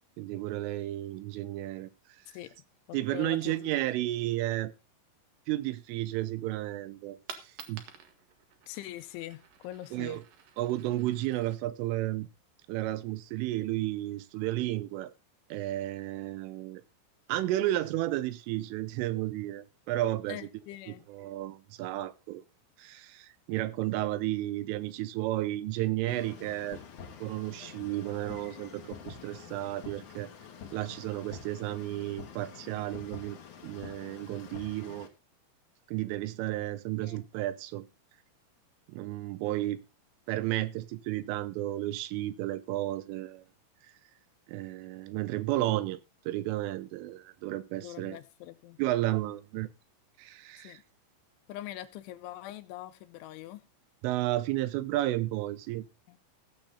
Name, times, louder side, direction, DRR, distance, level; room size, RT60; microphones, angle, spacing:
voice 1, 0.2-1.9 2.9-4.7 5.5-7.8 9.9-10.2 10.6-12.3 12.7-15.1 15.5-16.8 17.3-20.5 20.9-22.4 22.8-26.8 27.2-30.3 30.7-35.1 35.9-37.9 38.9-39.8 40.3-43.5 44.5-46.0 46.3-48.2 48.8-49.7 50.2-50.8 54.0-55.9, right 15 dB, 85° right, 3.4 m, -32 dB
voice 2, 2.9-3.8 8.7-10.2 20.3-21.1 37.0-37.2 47.8-48.8 50.5-50.8 51.5-53.6 56.1-56.2, left 14 dB, 80° left, 3.1 m, -43 dB
Coin (dropping), 7.2-12.9, right 7 dB, 60° right, 2.4 m, -52 dB
sound 1, 26.1-35.1, left 7 dB, 55° left, 2.6 m, -47 dB
16.0 x 7.6 x 4.0 m
omnidirectional pair, 5.6 m